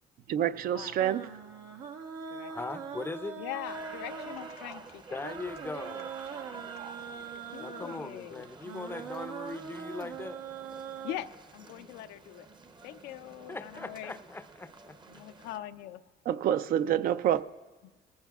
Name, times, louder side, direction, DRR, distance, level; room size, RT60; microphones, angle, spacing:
voice 1, 0.3-1.3 16.3-17.4, right 10 dB, 60° right, 0.5 m, -27 dB
sound 1, 1.0-11.1, right 6 dB, 85° right, 1.2 m, -42 dB
voice 2, 2.5-3.4 5.1-6.1 7.6-10.4 13.5-15.0, left 3 dB, 15° left, 0.5 m, -40 dB
voice 3, 3.4-5.2 7.5-8.5 11.0-12.5 12.8-14.1 15.1-16.0, left 13 dB, 85° left, 0.6 m, -42 dB
sound 2, 3.7-15.6, right 4 dB, 25° right, 0.7 m, -49 dB
19.0 x 15.0 x 2.4 m
cardioid pair, 110°, 17 cm